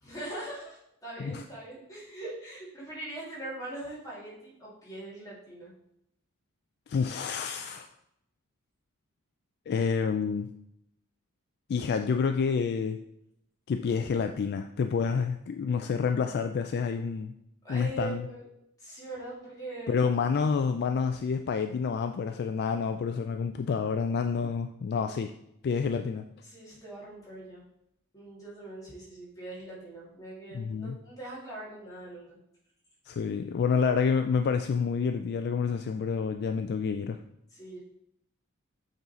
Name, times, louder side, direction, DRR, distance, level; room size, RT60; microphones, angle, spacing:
voice 1, 0.0-5.7 17.6-18.4 18.8-20.0 26.4-27.6 28.1-32.4 37.5-37.8, right 2 dB, 15° left, -6 dB, 2.7 m, -42 dB
voice 2, 6.9-7.9 9.7-10.5 11.7-13.0 13.7-17.3 17.7-18.3 19.9-25.3 25.6-26.2 30.5-31.0 33.1-37.2, left 5 dB, 50° left, 7 dB, 0.3 m, -28 dB
8.0 x 3.9 x 4.3 m, 0.78 s
head